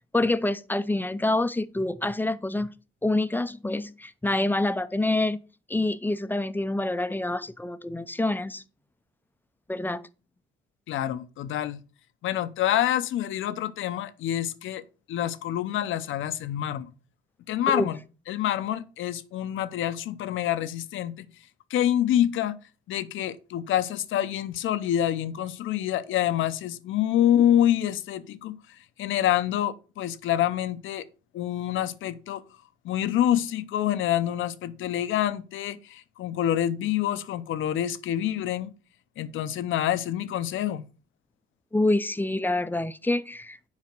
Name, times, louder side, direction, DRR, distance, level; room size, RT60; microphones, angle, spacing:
voice 1, 0.1-2.7 3.0-5.4 5.7-8.6 9.7-10.0 17.7-17.9 41.7-43.6, left 2 dB, 10° left, 0.5 m, -26 dB
voice 2, 10.9-11.8 12.2-14.8 15.1-16.9 17.5-18.0 18.3-21.3 21.7-22.6 22.9-28.6 29.0-31.0 31.3-32.4 32.8-38.7 39.2-40.9, left 11 dB, 80° left, 0.7 m, -26 dB
7.4 x 4.9 x 6.0 m
cardioid pair, 90°, 20 cm